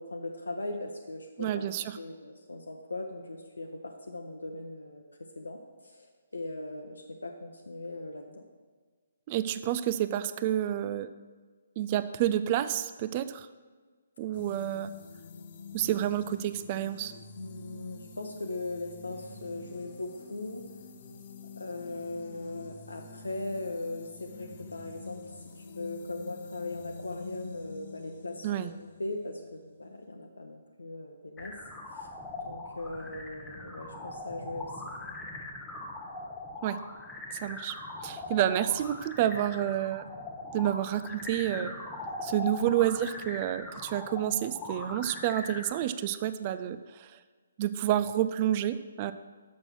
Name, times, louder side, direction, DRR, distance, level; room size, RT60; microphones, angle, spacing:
voice 1, 0.0-5.0 5.4-5.6 5.8-8.4 17.4-20.6 21.6-25.2 25.5-28.7 29.0-31.6 31.9-32.1 32.5-34.7, left 2 dB, 70° left, 2 dB, 0.7 m, -39 dB
voice 2, 1.4-2.0 9.3-11.1 11.8-13.5 14.2-14.9 15.7-17.1 28.4-28.7 36.6-36.8 37.3-37.8 38.0-40.1 40.5-41.7 42.2-47.2 47.6-49.1, right 12 dB, 30° right, 12 dB, 0.3 m, -29 dB
sound 1, 14.3-30.1, left 4 dB, 40° left, 0.7 m, -48 dB
sound 2, 31.4-45.7, left 2 dB, 10° left, 0.8 m, -41 dB
6.3 x 6.1 x 6.1 m, 1.4 s
figure-of-eight pair, 135°, 0 cm